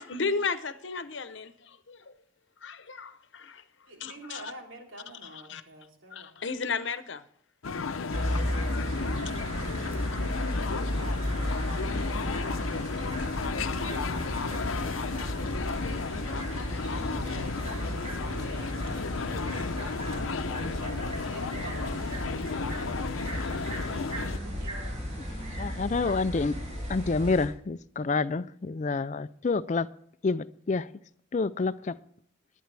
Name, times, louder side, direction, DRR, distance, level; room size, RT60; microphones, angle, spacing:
voice 1, 0.0-2.1 2.6-3.6 4.0-4.5 5.2-5.6 6.1-7.2 8.0-9.8, left 4 dB, 65° left, 0.9 m, -35 dB
voice 2, 3.9-6.3 17.1-18.9 19.6-23.6 24.4-25.0, right 1 dB, 75° right, 3.3 m, -47 dB
sound 1, 7.6-24.4, left 4 dB, 90° left, 0.7 m, -34 dB
sound 2, 8.1-27.5, equal, 35° right, 6.6 m, -34 dB
voice 3, 25.6-26.6 26.9-29.9 30.2-30.9 31.3-31.9, left 3 dB, 35° left, 0.4 m, -28 dB
20.5 x 9.2 x 3.4 m
head